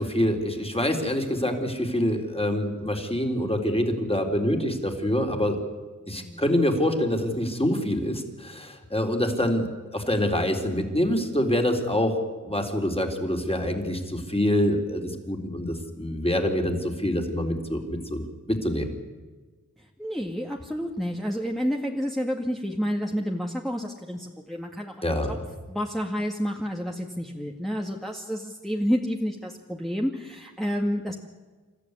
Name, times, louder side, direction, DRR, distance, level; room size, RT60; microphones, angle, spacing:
voice 1, 0.0-5.6 6.1-12.2 12.4-18.9 25.0-25.3, left 1 dB, 20° left, 4 dB, 3.8 m, -26 dB
voice 2, 19.8-25.4 25.7-31.2, equal, ahead, 0 dB, 2.0 m, -30 dB
28.0 x 14.0 x 9.7 m, 1.4 s
wide cardioid pair, 60°, 32 cm